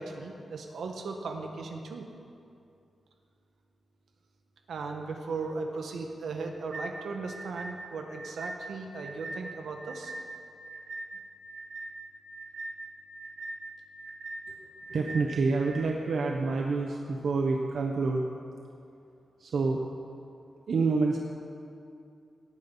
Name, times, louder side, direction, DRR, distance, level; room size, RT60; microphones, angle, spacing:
voice 1, 0.0-2.1 4.7-10.1, right 3 dB, 85° right, 3 dB, 1.5 m, -37 dB
sound 1, 6.7-15.9, right 2 dB, 50° right, 1.5 m, -41 dB
voice 2, 14.9-18.3 19.4-19.8 20.7-21.2, right 3 dB, 65° right, 1 dB, 1.0 m, -27 dB
18.0 x 9.5 x 5.6 m, 2.5 s
wide cardioid pair, 145°, 0 cm